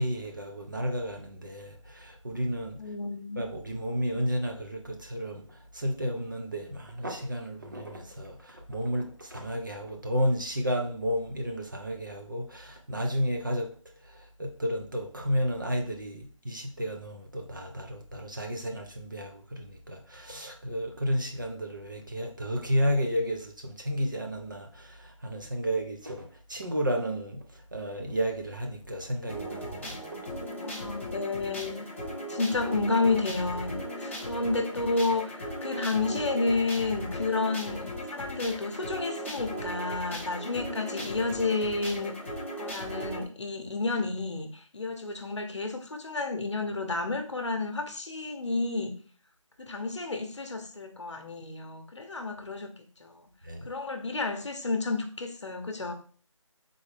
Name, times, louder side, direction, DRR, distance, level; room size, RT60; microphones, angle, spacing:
voice 1, 0.0-2.8 3.4-5.4 5.7-13.7 14.1-27.4 27.7-30.2 53.4-53.7, equal, 35° right, 0.6 m, -32 dB
voice 2, 2.8-3.4 30.6-31.9 32.3-42.1 42.6-49.0 49.6-52.7 53.0-53.2 53.7-55.9, left 3 dB, 60° left, 0.8 m, -31 dB
sound 1, 29.3-43.2, equal, 25° left, 0.7 m, -37 dB
3.8 x 3.5 x 3.3 m
figure-of-eight pair, 175°, 17 cm